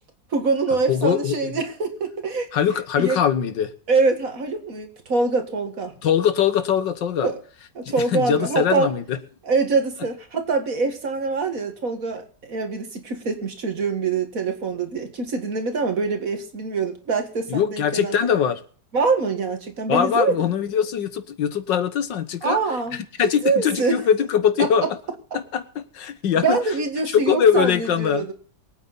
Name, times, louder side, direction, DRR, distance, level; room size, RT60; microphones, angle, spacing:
voice 1, 0.3-2.5 3.0-3.2 3.9-5.9 7.2-7.4 7.8-8.9 9.4-18.2 18.9-20.5 22.4-23.0 23.4-24.0 24.6-24.9 26.4-28.3, right 4 dB, 50° right, 6 dB, 2.2 m, -24 dB
voice 2, 0.9-1.5 2.5-3.7 6.0-7.3 7.9-9.2 17.5-18.6 19.9-22.6 23.2-24.9 25.3-26.6 27.1-28.3, left 8 dB, 85° left, 11 dB, 1.9 m, -22 dB
23.5 x 8.9 x 4.1 m, 0.43 s
omnidirectional pair, 1.9 m